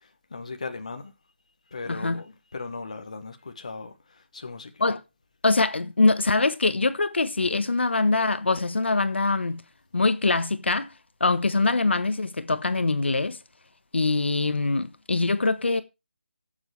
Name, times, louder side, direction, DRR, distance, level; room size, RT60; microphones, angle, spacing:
voice 1, 0.0-1.1 1.7-4.8, left 4 dB, 35° left, 1.3 m, -38 dB
voice 2, 1.9-2.2 4.8-5.0 5.4-9.6 9.9-10.9 11.2-13.4 13.9-15.8, left 3 dB, 80° left, 1.3 m, -23 dB
16.5 x 7.3 x 3.3 m
hypercardioid pair, 180°, 6 cm